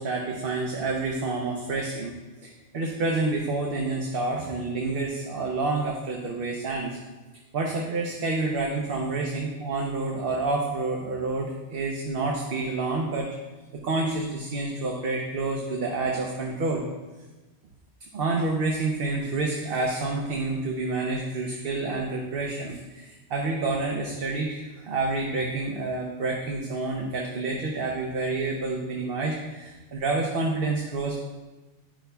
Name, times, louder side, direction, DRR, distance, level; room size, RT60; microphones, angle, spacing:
voice 1, 0.0-2.1 2.4-7.0 7.5-13.3 13.8-16.8 18.1-31.1, right 3 dB, 60° right, 0 dB, 0.9 m, -28 dB
11.5 x 5.4 x 2.3 m, 1.2 s
omnidirectional pair, 1.2 m